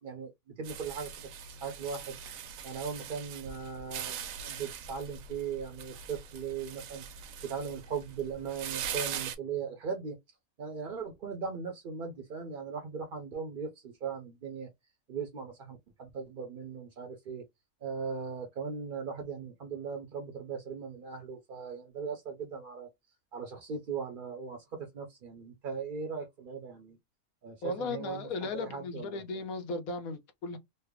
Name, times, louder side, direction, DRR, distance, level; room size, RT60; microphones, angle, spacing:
voice 1, 0.0-1.3 1.6-2.2 2.6-10.2 10.6-14.7 15.1-17.4 17.8-22.9 23.3-27.0 27.4-29.2, right 6 dB, 55° right, 0.6 m, -39 dB
sound 1, 0.6-9.3, right 8 dB, 75° right, 1.0 m, -41 dB
voice 2, 27.6-30.6, left 3 dB, 90° left, 1.2 m, -36 dB
3.3 x 2.0 x 3.4 m
omnidirectional pair, 1.4 m